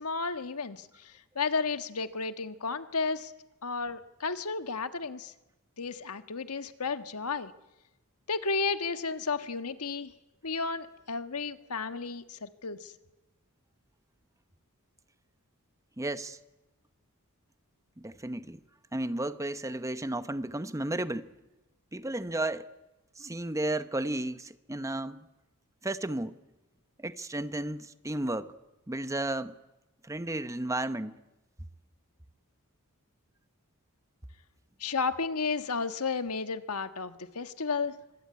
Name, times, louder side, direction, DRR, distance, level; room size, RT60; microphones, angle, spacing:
voice 1, 0.0-3.3 3.6-5.3 5.8-7.5 8.3-10.1 10.4-12.9 34.8-37.9, left 4 dB, 80° left, 1.5 m, -33 dB
voice 2, 16.0-16.4 18.0-18.6 18.9-21.3 21.9-22.7 23.2-25.3 25.8-26.4 27.0-28.5 28.9-29.5 30.0-31.2, right 1 dB, 15° right, 0.9 m, -33 dB
24.5 x 24.5 x 9.6 m
head